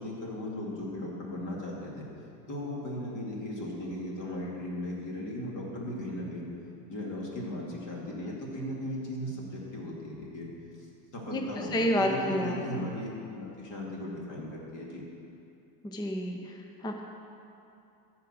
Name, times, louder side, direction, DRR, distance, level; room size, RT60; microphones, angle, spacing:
voice 1, 0.0-2.1 2.5-6.5 6.9-10.5 10.8-13.1 13.3-15.0, left 1 dB, 35° left, -3 dB, 2.5 m, -37 dB
voice 2, 11.3-12.9 15.8-17.1, equal, 10° left, 2 dB, 0.6 m, -30 dB
13.5 x 4.9 x 6.2 m, 2.7 s
hypercardioid pair, 105°, 49 cm